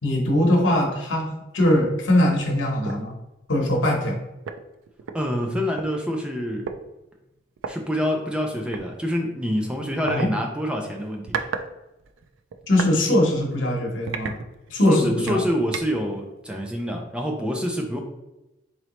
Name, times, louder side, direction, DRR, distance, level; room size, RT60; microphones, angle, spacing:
voice 1, 0.0-3.1 3.5-4.2 10.0-10.3 12.7-14.4 14.7-15.4, left 1 dB, 80° left, 0 dB, 1.0 m, -21 dB
sound 1, 1.6-1.9 2.3-2.4 2.9-3.1 4.1-4.2 4.5-5.9 6.7-6.8 7.6-7.7 8.7-8.9 10.1-10.3 11.0-11.7 12.0-13.0 13.4-13.6 14.1-14.9 15.3-16.1, right 6 dB, 85° right, 0.3 m, -33 dB
voice 2, 5.1-6.7 7.6-11.4 14.9-18.0, equal, 5° right, 2 dB, 0.4 m, -26 dB
3.9 x 3.0 x 3.0 m, 0.97 s
head